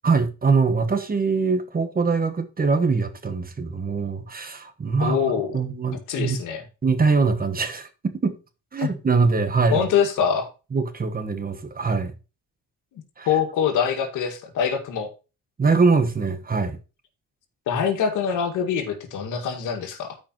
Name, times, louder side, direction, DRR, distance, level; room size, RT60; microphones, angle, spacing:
voice 1, 0.0-5.2 5.5-6.4 6.8-8.4 8.7-9.9 10.7-12.1 13.2-13.3 15.6-16.8, right 4 dB, 30° right, 1.4 m, -23 dB
voice 2, 5.0-5.6 6.1-6.6 8.8-8.9 9.7-10.5 13.2-15.1 17.7-20.2, left 7 dB, 85° left, 1.9 m, -24 dB
13.5 x 5.1 x 3.0 m
cardioid pair, 90°, 30 cm